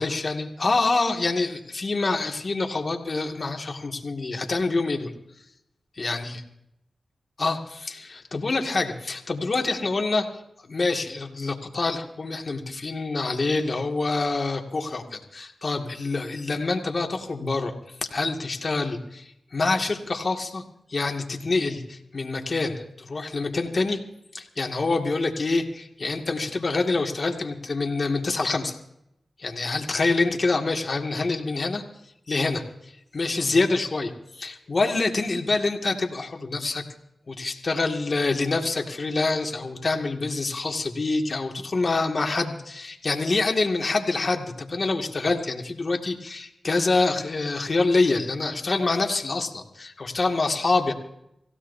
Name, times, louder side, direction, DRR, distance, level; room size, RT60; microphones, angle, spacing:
voice 1, 0.0-5.1 6.0-6.4 7.4-10.3 10.7-20.6 20.9-24.0 24.3-28.8 29.4-31.8 32.3-36.8 37.3-50.9, left 3 dB, 55° left, 3 dB, 2.2 m, -26 dB
25.5 x 16.0 x 2.8 m, 0.80 s
cardioid pair, 45°, 0 cm